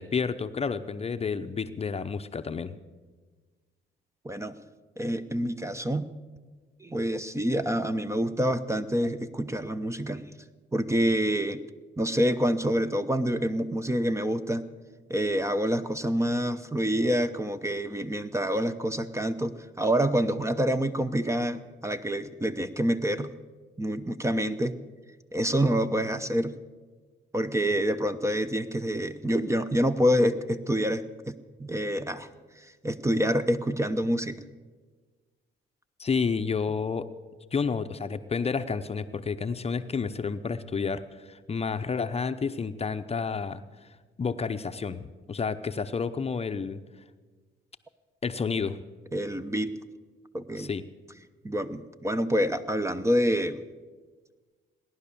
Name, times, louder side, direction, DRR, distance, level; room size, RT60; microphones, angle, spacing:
voice 1, 0.0-2.8 36.0-37.1 37.5-43.9 44.2-46.8 48.2-48.8 50.6-50.8, left 5 dB, 30° left, 9 dB, 0.7 m, -30 dB
voice 2, 4.2-4.6 5.0-6.1 6.8-10.3 10.7-11.6 12.0-14.7 15.1-23.3 23.8-24.7 25.3-26.5 27.3-32.3 32.6-34.4 49.1-49.8 50.3-50.7 51.4-53.6, equal, 15° right, 11 dB, 0.8 m, -27 dB
18.0 x 11.0 x 6.9 m, 1.4 s
cardioid pair, 90°, 20 cm